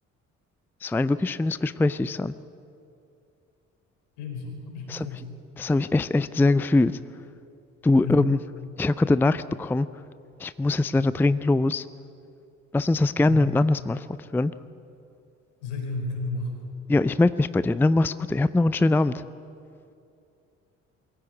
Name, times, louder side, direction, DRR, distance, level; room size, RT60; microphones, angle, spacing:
voice 1, 0.8-2.3 4.9-5.1 5.6-7.0 7.8-8.4 8.8-9.9 10.4-11.8 12.7-14.1 14.3-14.5 16.9-19.2, left 2 dB, 5° left, 16 dB, 0.5 m, -22 dB
voice 2, 4.2-5.3 8.0-8.2 13.2-13.4 15.6-16.6, left 3 dB, 70° left, 2 dB, 4.7 m, -32 dB
22.5 x 16.0 x 9.0 m, 2.5 s
figure-of-eight pair, 50°, 37 cm